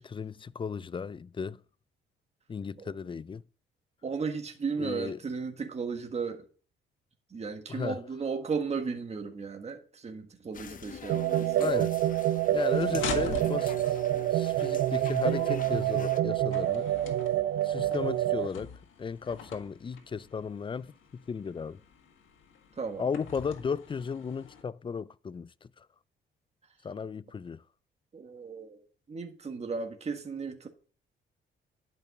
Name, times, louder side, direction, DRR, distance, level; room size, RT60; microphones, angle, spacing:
voice 1, 0.0-1.6 2.5-3.4 4.8-5.2 7.7-8.0 11.6-11.9 12.5-14.0 14.3-16.9 17.6-18.7 19.0-21.8 23.0-25.9 26.8-27.6, left 6 dB, 25° left, 0.4 m, -35 dB
voice 2, 4.0-6.4 7.3-11.7 13.2-13.3 14.1-14.3 22.8-23.0 28.1-30.7, right 5 dB, 35° right, 1.6 m, -35 dB
sound 1, 10.5-16.2, left 7 dB, 45° left, 0.8 m, -45 dB
sound 2, 11.1-18.5, right 13 dB, 75° right, 0.5 m, -27 dB
sound 3, 12.7-24.6, left 7 dB, 85° left, 1.6 m, -44 dB
11.0 x 5.5 x 5.9 m
cardioid pair, 90°, 20 cm